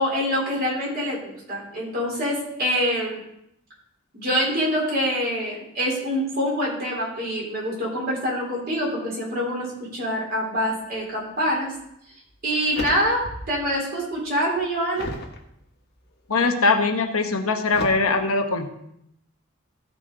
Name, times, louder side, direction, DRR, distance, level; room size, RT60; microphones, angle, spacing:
voice 1, 0.0-3.2 4.1-11.7 12.4-15.1, equal, 45° right, -4 dB, 3.7 m, -25 dB
sound 1, 11.7-11.9 12.3-13.7 14.0-15.4 16.0-16.4 17.7-17.9, left 1 dB, 50° left, 1.3 m, -35 dB
voice 2, 16.3-18.7, left 3 dB, 85° left, 4 dB, 1.1 m, -21 dB
14.5 x 5.0 x 3.8 m, 0.77 s
head